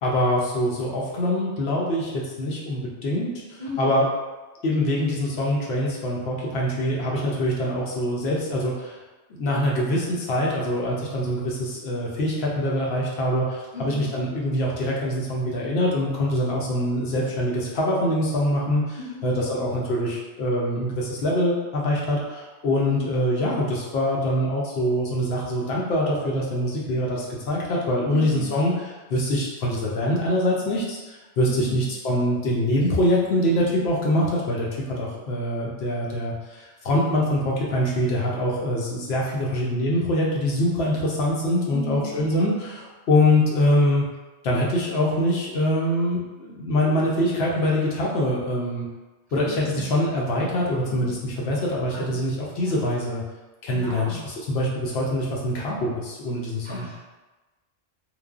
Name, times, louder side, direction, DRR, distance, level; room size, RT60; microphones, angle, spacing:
voice 1, 0.0-4.0 4.6-9.0 9.3-44.1 44.4-48.9 49.3-53.2 53.6-56.9, left 1 dB, 70° left, -3 dB, 0.8 m, -24 dB
voice 2, 3.6-4.0 13.7-14.1 19.0-19.3 22.9-23.1 28.1-28.4 31.5-31.9 41.7-42.3 49.3-50.0 50.3-51.2 51.9-52.2 52.6-52.8 53.7-54.3 56.6-57.0, left 3 dB, 50° right, -7 dB, 0.6 m, -36 dB
3.1 x 2.1 x 2.3 m, 1.2 s
omnidirectional pair, 1.2 m